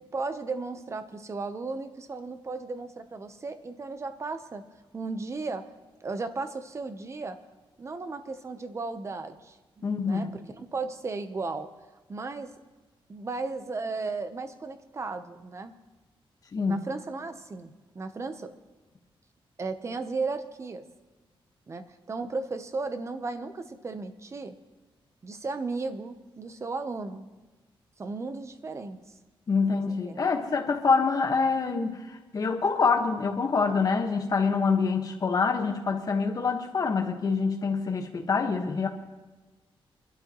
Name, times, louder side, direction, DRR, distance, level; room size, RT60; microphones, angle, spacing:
voice 1, 0.1-4.6 4.9-5.7 6.0-7.4 7.8-11.7 12.1-12.5 13.1-15.7 16.7-18.5 19.6-20.8 21.7-24.6 25.2-27.3 28.0-29.0 29.9-30.4, right 3 dB, 30° right, 9 dB, 0.9 m, -35 dB
voice 2, 9.8-10.3 16.5-16.8 29.5-38.9, left 4 dB, 40° left, 3 dB, 1.4 m, -26 dB
25.5 x 12.5 x 3.1 m, 1.2 s
wide cardioid pair, 145°, 9 cm